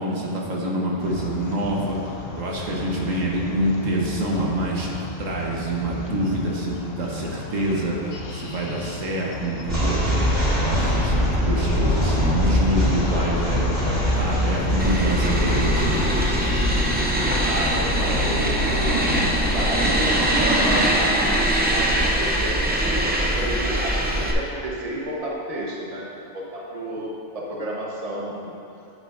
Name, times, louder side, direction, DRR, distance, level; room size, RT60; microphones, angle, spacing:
voice 1, 0.0-10.0 10.5-13.7 14.1-16.1, right 1 dB, 85° right, -3 dB, 1.5 m, -26 dB
sound 1, 1.0-20.8, left 3 dB, 55° left, 0.8 m, -33 dB
sound 2, 9.6-20.9, equal, 50° right, 2.5 m, -24 dB
sound 3, 14.8-24.3, right 1 dB, 15° right, 0.4 m, -22 dB
voice 2, 17.4-26.1 26.3-28.5, right 1 dB, 30° right, -3 dB, 1.0 m, -31 dB
9.8 x 9.1 x 2.6 m, 2.8 s
omnidirectional pair, 1.3 m